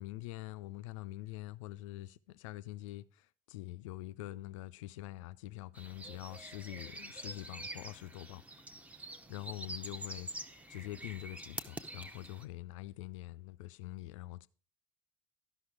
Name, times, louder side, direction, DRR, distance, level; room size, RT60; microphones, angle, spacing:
voice 1, 0.0-8.4 9.3-10.3 10.7-14.5, left 16 dB, 60° left, 0.5 m, -45 dB
sound 1, 5.8-12.5, right 1 dB, 10° right, 0.7 m, -46 dB
13.0 x 5.7 x 4.7 m
figure-of-eight pair, 65°, 18 cm